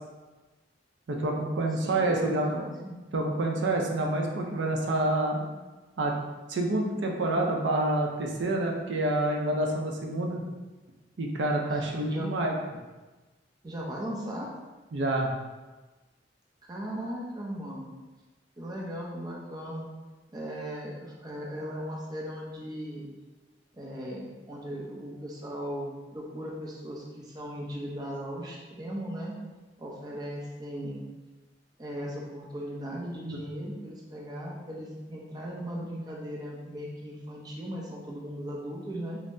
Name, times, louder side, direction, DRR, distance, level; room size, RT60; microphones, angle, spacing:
voice 1, 1.1-2.6 3.1-5.4 6.0-6.1 6.5-10.4 11.2-12.6 14.9-15.3 33.2-33.5, right 2 dB, 80° right, 1 dB, 0.5 m, -28 dB
voice 2, 1.8-2.9 11.7-12.3 13.6-14.5 16.6-17.9 18.6-19.9 20.3-23.1 23.7-29.4 29.8-31.0 31.8-39.2, equal, 20° right, -3 dB, 0.5 m, -37 dB
5.2 x 2.0 x 2.6 m, 1.2 s
head